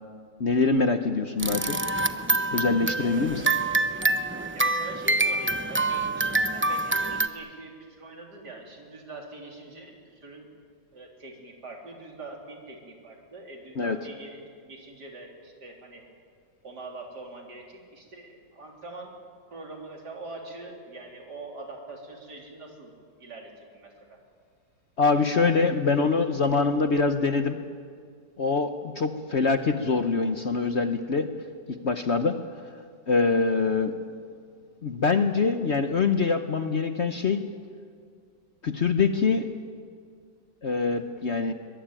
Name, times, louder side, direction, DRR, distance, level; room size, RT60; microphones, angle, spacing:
voice 1, 0.4-1.8 2.5-3.5 13.8-14.0 25.0-27.6 28.4-31.3 31.8-32.4 33.1-33.9 34.8-37.5 38.6-39.5 40.6-41.5, left 4 dB, 50° left, 8 dB, 1.0 m, -24 dB
sound 1, 1.4-7.3, right 2 dB, 15° right, 0.4 m, -26 dB
voice 2, 3.0-3.5 4.5-10.5 10.9-16.0 16.6-19.1 19.5-22.9 23.2-24.2, right 2 dB, 65° right, 1 dB, 4.1 m, -43 dB
22.0 x 22.0 x 9.0 m, 2.1 s
omnidirectional pair, 1.9 m